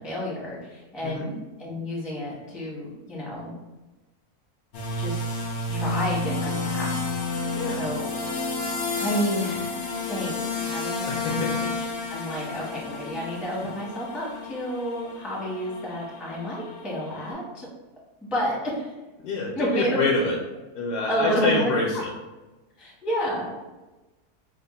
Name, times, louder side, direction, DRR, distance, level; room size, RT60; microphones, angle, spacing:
voice 1, 0.0-3.6 4.9-5.2 5.7-6.9 7.2-8.1 8.6-8.7 9.0-11.7 12.1-17.7 18.3-18.9 19.6-20.3 21.1-22.0 22.8-23.6, equal, ahead, -5 dB, 0.5 m, -30 dB
sound 1, 4.7-17.3, left 2 dB, 60° left, 0.7 m, -31 dB
voice 2, 11.1-11.5 19.2-20.4 20.8-22.1, left 3 dB, 80° left, -2 dB, 1.1 m, -26 dB
3.3 x 2.1 x 4.0 m, 1.1 s
omnidirectional pair, 1.6 m